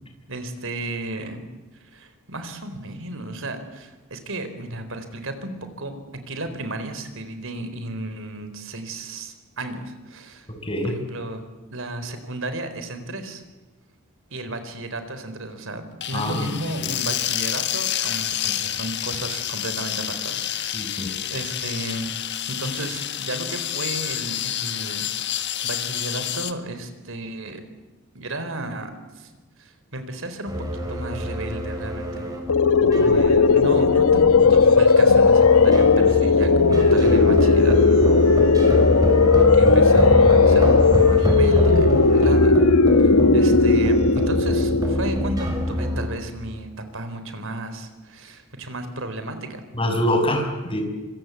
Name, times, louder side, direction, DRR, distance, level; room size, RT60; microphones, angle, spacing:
voice 1, 0.3-1.5 1.8-6.0 6.3-10.5 10.8-11.4 11.7-13.4 14.3-20.8 21.3-22.1 22.5-27.6 28.1-29.3 29.6-30.5 30.9-32.3 32.9-37.8 39.5-42.6 43.0-49.6, right 2 dB, 65° right, 9 dB, 4.2 m, -33 dB
sound 1, 16.0-26.5, left 11 dB, 55° left, 1.6 m, -28 dB
voice 2, 16.1-16.9 20.7-21.1 49.8-50.8, left 1 dB, 25° left, 4 dB, 6.2 m, -25 dB
sound 2, 30.5-46.1, equal, 20° right, 6.3 m, -25 dB
sound 3, 32.5-45.3, left 4 dB, 90° left, 1.1 m, -16 dB
26.0 x 25.5 x 8.4 m, 1.2 s
head